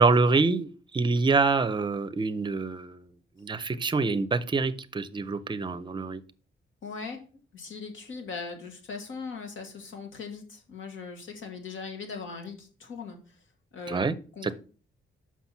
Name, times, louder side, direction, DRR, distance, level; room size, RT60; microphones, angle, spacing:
voice 1, 0.0-3.1 3.4-6.2 13.9-14.1 14.4-14.5, right 4 dB, 25° right, 13 dB, 0.6 m, -25 dB
voice 2, 6.8-7.2 7.5-13.4 13.7-14.5, left 5 dB, 80° left, 3 dB, 2.0 m, -40 dB
6.0 x 5.9 x 5.9 m, 0.39 s
wide cardioid pair, 150°, 20 cm